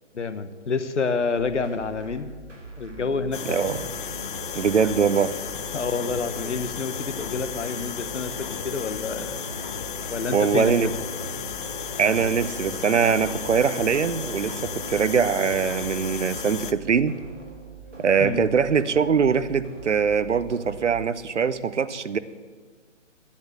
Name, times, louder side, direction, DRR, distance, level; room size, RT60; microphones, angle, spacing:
voice 1, 0.1-2.3 2.8-3.6 5.7-9.4 10.1-10.9 18.2-18.5, left 4 dB, 70° left, 12 dB, 1.1 m, -28 dB
sound 1, 1.4-21.1, right 4 dB, 90° right, 2.6 m, -44 dB
sound 2, 2.9-19.1 20.6-20.7, right 4 dB, 15° right, 0.4 m, -47 dB
sound 3, 3.3-16.7, left 7 dB, 45° left, 0.6 m, -34 dB
voice 2, 3.5-3.8 4.6-5.3 10.3-10.9 12.0-17.1 18.0-22.2, right 6 dB, 70° right, 15 dB, 0.8 m, -22 dB
11.0 x 9.7 x 7.8 m, 1.5 s
figure-of-eight pair, 135°, 37 cm